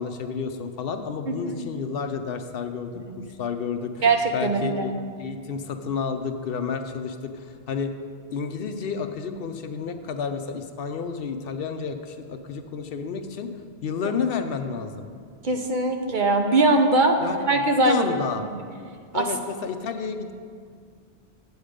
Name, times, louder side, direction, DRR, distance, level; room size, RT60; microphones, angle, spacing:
voice 1, 0.0-3.0 3.4-4.1 4.3-4.9 5.2-7.9 8.3-13.5 13.8-15.1 17.2-18.4 19.1-20.3, left 6 dB, 65° left, 8 dB, 0.8 m, -30 dB
voice 2, 1.3-1.6 2.9-3.0 4.0-4.9 15.4-17.2 17.5-18.5 19.1-19.3, right 2 dB, 50° right, 4 dB, 0.9 m, -21 dB
8.7 x 8.0 x 5.0 m, 2.1 s
omnidirectional pair, 1.1 m